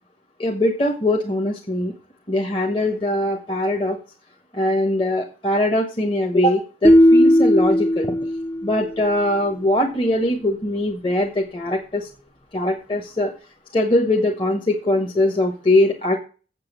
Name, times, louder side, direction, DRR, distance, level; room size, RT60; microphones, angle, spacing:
voice 1, 0.4-1.9 2.3-4.0 4.5-8.1 8.6-12.1 12.5-13.3 13.7-16.2, left 1 dB, 30° left, 1 dB, 1.5 m, -21 dB
sound 1, 6.8-9.0, equal, 10° left, 0.5 m, -16 dB
7.9 x 7.6 x 7.4 m, 0.35 s
head